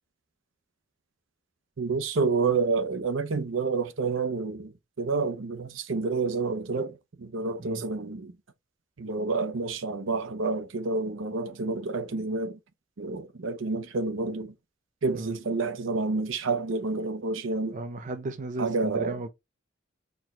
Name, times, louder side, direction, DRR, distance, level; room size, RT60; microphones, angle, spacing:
voice 1, 1.8-4.7 5.0-8.3 9.0-12.6 13.0-14.5 15.0-17.8 18.6-19.2, right 4 dB, 75° right, 0.7 m, -29 dB
voice 2, 17.7-19.3, right 2 dB, 40° right, 0.4 m, -35 dB
4.5 x 2.2 x 4.2 m
head